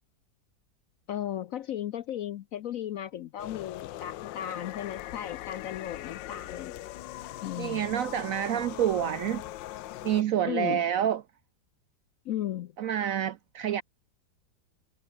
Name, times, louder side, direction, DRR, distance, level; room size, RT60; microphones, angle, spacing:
voice 1, 1.1-6.9 7.4-7.9 10.4-10.8 12.3-12.7, left 11 dB, 65° left, 0.8 m, -35 dB
sound 1, 3.4-10.2, left 15 dB, 90° left, 1.4 m, -41 dB
voice 2, 7.6-9.4 10.0-11.2 12.8-13.8, right 10 dB, 70° right, 0.8 m, -28 dB
omnidirectional pair, 1.9 m